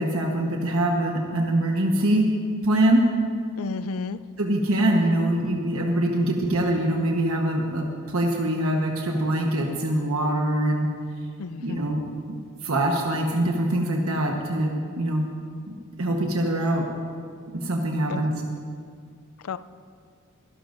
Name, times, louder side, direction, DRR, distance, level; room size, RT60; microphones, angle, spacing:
voice 1, 0.0-2.3 2.6-3.0 4.4-7.9 8.1-10.9 11.6-12.0 12.3-12.4 12.6-15.3 16.0-16.8 17.5-18.4, right 1 dB, 75° right, 0 dB, 1.2 m, -23 dB
voice 2, 3.6-4.2 6.4-6.5 11.4-12.0 18.1-18.3 19.4-19.6, left 4 dB, 75° left, 14 dB, 0.4 m, -32 dB
23.0 x 12.5 x 2.6 m, 2.1 s
head